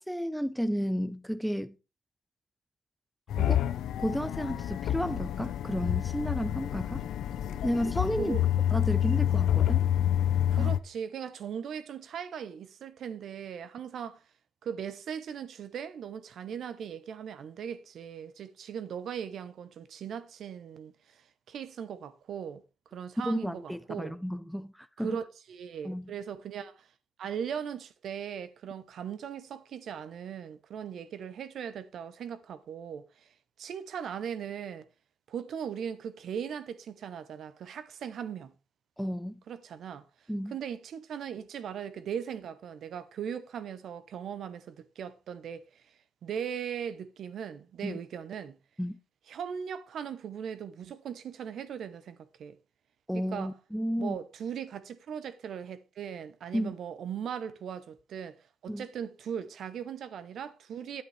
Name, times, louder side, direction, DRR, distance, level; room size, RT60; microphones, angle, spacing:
voice 1, 0.0-1.8 3.5-3.6 4.0-7.0 7.6-8.4 8.7-9.8 10.6-10.7 23.2-25.2 25.8-26.1 39.0-39.4 40.3-40.5 47.8-48.0 48.8-49.0 53.1-54.2 56.5-56.7 58.7-58.8, equal, ahead, 0.6 m, -32 dB
sound 1, 3.3-10.8, left 11 dB, 75° left, 0.5 m, -28 dB
voice 2, 10.5-14.2 14.6-22.6 22.9-24.2 25.0-26.9 27.2-34.9 35.3-38.5 39.5-40.1 40.5-45.8 46.2-48.6 49.3-52.6 53.1-53.5 54.0-61.0, right 8 dB, 65° right, 0.9 m, -39 dB
9.7 x 8.2 x 3.3 m
cardioid pair, 90°, 0 cm